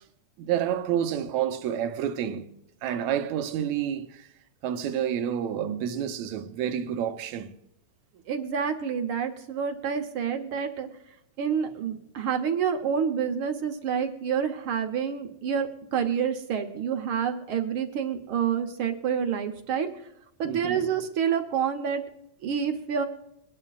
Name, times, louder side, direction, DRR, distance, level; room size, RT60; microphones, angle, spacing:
voice 1, 0.4-2.5 2.8-4.3 4.6-7.5 20.4-20.8, right 9 dB, 75° right, 2.2 m, -29 dB
voice 2, 8.3-10.9 11.4-19.9 20.4-22.0 22.4-23.0, right 7 dB, 60° right, 1.5 m, -28 dB
22.5 x 11.0 x 2.4 m
omnidirectional pair, 3.3 m